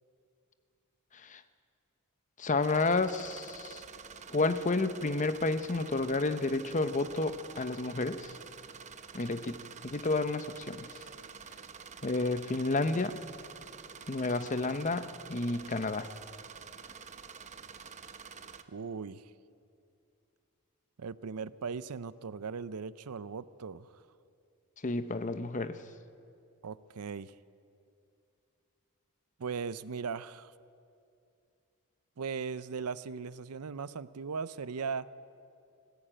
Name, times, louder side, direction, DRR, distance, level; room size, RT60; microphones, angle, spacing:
voice 1, 2.4-3.8 4.3-8.4 9.1-10.9 12.0-13.2 14.1-16.1 24.8-25.8, left 3 dB, 35° left, 12 dB, 0.8 m, -31 dB
sound 1, 2.6-18.6, right 6 dB, 30° right, 0.8 m, -48 dB
voice 2, 18.7-19.3 21.0-23.9 26.6-27.3 29.4-30.5 32.2-35.1, right 5 dB, 85° right, 17 dB, 0.6 m, -38 dB
20.0 x 15.5 x 8.9 m, 2.5 s
head